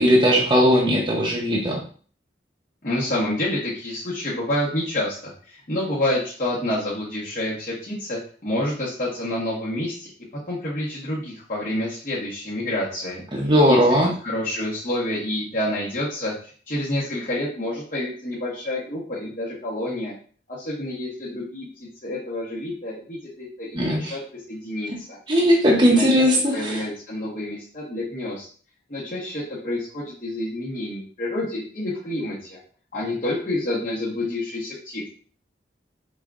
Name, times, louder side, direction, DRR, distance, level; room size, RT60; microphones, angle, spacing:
voice 1, 0.0-1.8 13.3-14.1 23.7-24.2 25.3-26.8, equal, 25° right, -2 dB, 0.8 m, -18 dB
voice 2, 2.8-10.1 10.5-13.2 13.7-13.8 14.2-20.1 20.5-24.2 24.5-25.2 25.8-26.2 26.5-28.4 28.9-32.6 32.9-35.1, left 1 dB, 45° left, -8 dB, 1.2 m, -28 dB
5.2 x 3.6 x 2.4 m, 0.43 s
head